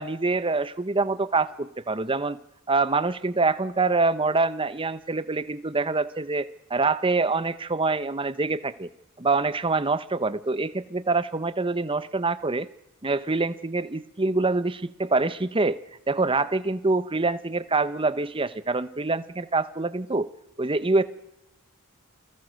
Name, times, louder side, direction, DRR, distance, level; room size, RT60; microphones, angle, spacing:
voice 1, 0.0-2.4 2.7-8.9 9.2-12.7 13.0-20.3 20.6-21.0, right 3 dB, 25° right, 14 dB, 0.8 m, -25 dB
29.0 x 19.0 x 6.4 m, 0.89 s
head